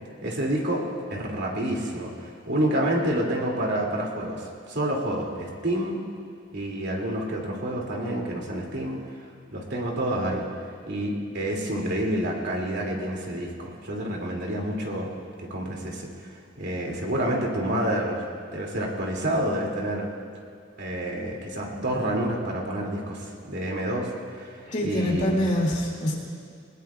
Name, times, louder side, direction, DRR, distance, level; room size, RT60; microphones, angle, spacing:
voice 1, 0.2-0.8 1.1-6.0 6.5-9.0 9.5-10.5 10.8-15.1 15.4-16.3 16.6-18.2 18.5-20.1 20.8-24.1 24.4-25.4, right 1 dB, 60° right, -1 dB, 2.5 m, -28 dB
voice 2, 24.7-26.2, left 1 dB, 40° left, -2 dB, 2.5 m, -25 dB
21.0 x 20.5 x 2.4 m, 2.3 s
head